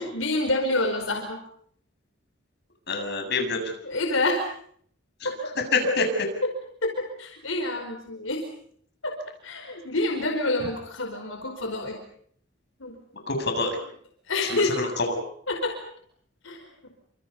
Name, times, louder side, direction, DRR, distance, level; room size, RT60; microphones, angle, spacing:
voice 1, 0.0-1.4 3.8-4.5 5.2-5.5 5.8-5.9 6.8-8.5 9.0-9.1 9.4-12.0 12.8-13.0 14.3-14.8 15.5-15.8 16.4-16.6, left 2 dB, 90° left, 4 dB, 4.9 m, -27 dB
voice 2, 2.9-3.7 5.7-6.0 13.3-13.7 14.4-15.1, left 3 dB, 60° left, 4 dB, 7.5 m, -26 dB
29.5 x 27.5 x 5.5 m, 0.62 s
head